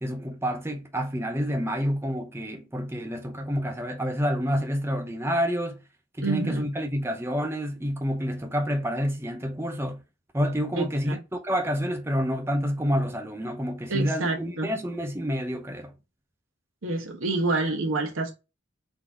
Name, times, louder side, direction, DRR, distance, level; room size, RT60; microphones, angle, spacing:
voice 1, 0.0-5.8 6.2-10.0 10.3-11.2 11.4-15.9, equal, 15° right, 0.7 m, -28 dB
voice 2, 6.2-6.7 10.7-11.2 13.9-14.7 16.8-18.3, right 3 dB, 90° right, 1.1 m, -28 dB
3.9 x 2.7 x 4.7 m
head